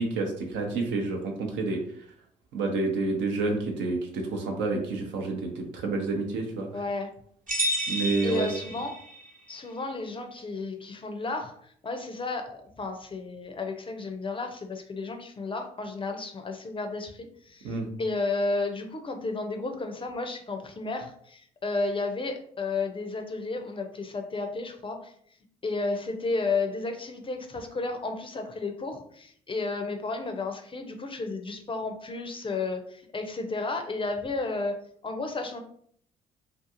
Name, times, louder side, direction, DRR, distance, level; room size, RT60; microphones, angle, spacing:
voice 1, 0.0-1.8 2.5-6.7 7.9-8.5 17.6-17.9, right 3 dB, 70° right, 2 dB, 0.7 m, -29 dB
voice 2, 6.7-7.1 8.2-8.9 9.5-25.1 25.6-34.8 35.0-35.6, left 3 dB, 25° left, 5 dB, 0.5 m, -32 dB
sound 1, 7.5-9.3, right 1 dB, 40° right, 0.9 m, -30 dB
2.4 x 2.4 x 2.7 m, 0.63 s
hypercardioid pair, 50°, 20 cm